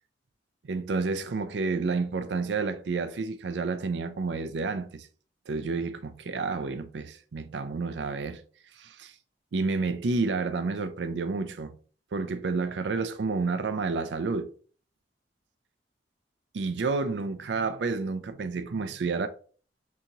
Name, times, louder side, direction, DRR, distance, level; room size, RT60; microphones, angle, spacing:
voice 1, 0.6-5.1 5.5-8.4 8.7-9.2 9.5-11.7 12.1-14.5 16.5-19.3, right 4 dB, 80° right, 0.5 m, -30 dB
6.1 x 2.8 x 2.9 m
head